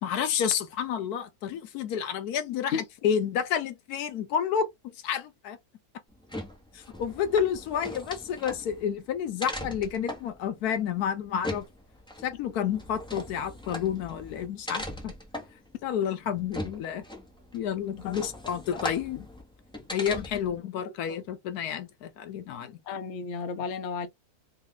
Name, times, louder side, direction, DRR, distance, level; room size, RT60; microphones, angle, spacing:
voice 1, 0.0-4.7 5.0-5.6 6.7-11.7 12.2-15.1 15.8-17.0 17.5-19.3 19.9-22.8, left 8 dB, 80° left, 1.2 m, -30 dB
sound 1, 6.1-20.6, left 1 dB, 5° left, 0.8 m, -40 dB
voice 2, 22.9-24.1, left 6 dB, 60° left, 0.8 m, -33 dB
3.4 x 2.3 x 3.7 m
omnidirectional pair, 1.6 m